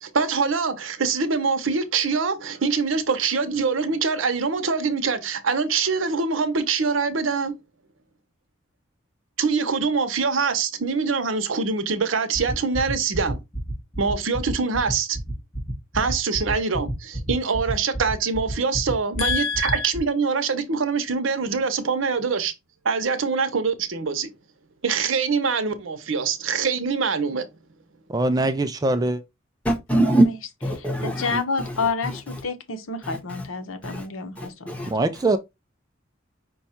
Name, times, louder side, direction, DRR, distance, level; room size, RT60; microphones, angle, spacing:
voice 1, 0.0-7.5 9.4-13.4 14.0-15.2 15.9-22.5 22.8-24.3 24.8-27.5, right 5 dB, 75° right, 0.8 m, -24 dB
sound 1, 12.3-20.0, right 2 dB, 25° left, 2.1 m, -29 dB
voice 2, 19.2-19.9 31.2-34.9, left 4 dB, 85° left, 0.9 m, -28 dB
voice 3, 28.1-29.2 34.9-35.4, right 2 dB, 20° right, 0.3 m, -22 dB
voice 4, 29.6-30.2 30.6-32.4 33.0-33.5 33.8-34.1 34.4-35.2, right 1 dB, 5° left, 1.0 m, -25 dB
5.3 x 2.3 x 4.2 m
head